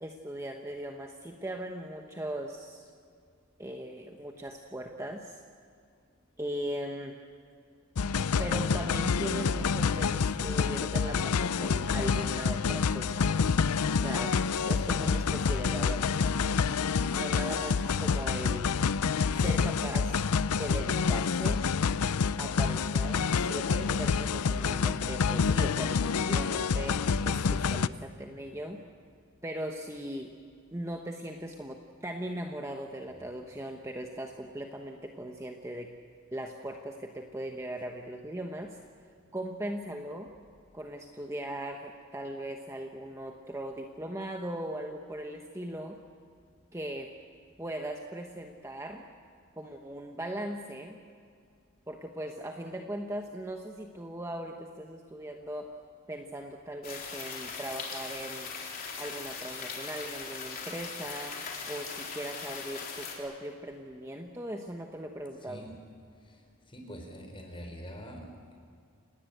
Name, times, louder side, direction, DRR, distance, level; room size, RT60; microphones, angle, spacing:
voice 1, 0.0-2.9 3.6-5.4 6.4-7.2 8.4-13.3 14.0-14.4 14.7-16.2 17.1-18.7 19.3-20.2 20.5-21.6 22.4-28.8 29.4-30.3 30.7-35.9 36.3-38.8 39.3-40.3 40.7-46.0 46.7-47.1 47.6-49.0 49.6-51.0 51.9-55.7 56.1-58.5 59.0-61.4 61.7-65.6, right 1 dB, 15° right, 2 dB, 1.1 m, -39 dB
sound 1, 8.0-27.9, left 5 dB, 90° left, 0.6 m, -28 dB
sound 2, 56.8-63.2, left 5 dB, 40° left, 4.0 m, -40 dB
voice 2, 66.7-68.3, equal, 25° left, 3 dB, 4.3 m, -43 dB
29.0 x 18.5 x 8.0 m, 2.2 s
head